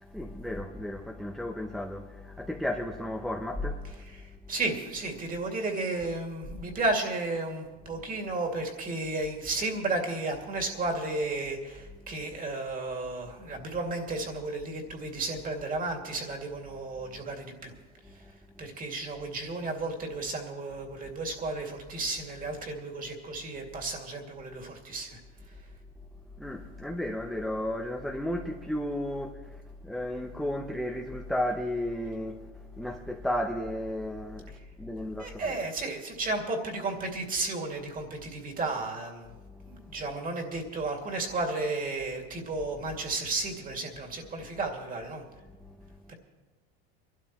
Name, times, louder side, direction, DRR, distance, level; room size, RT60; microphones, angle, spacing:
voice 1, 0.0-4.0 18.0-18.1 26.4-35.6 39.5-39.9 45.6-45.9, left 1 dB, ahead, 0.7 m, -34 dB
voice 2, 4.0-17.7 18.6-25.2 35.2-39.3 39.7-45.2 46.1-46.2, right 2 dB, 25° right, 2.4 m, -33 dB
25.5 x 12.5 x 3.1 m
supercardioid pair, 125°, 31 cm